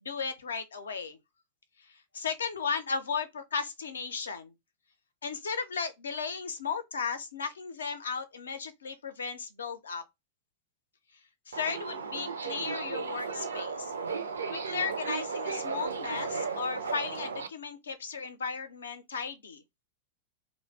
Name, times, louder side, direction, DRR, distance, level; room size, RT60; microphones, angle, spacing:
voice 1, 0.0-1.2 2.1-4.5 5.2-10.0 11.5-13.9 14.5-19.6, left 5 dB, 70° left, 0.5 m, -35 dB
Subway metro underground, 11.5-17.5, right 5 dB, 75° right, 0.4 m, -35 dB
2.5 x 2.1 x 3.2 m
figure-of-eight pair, 95°, 0 cm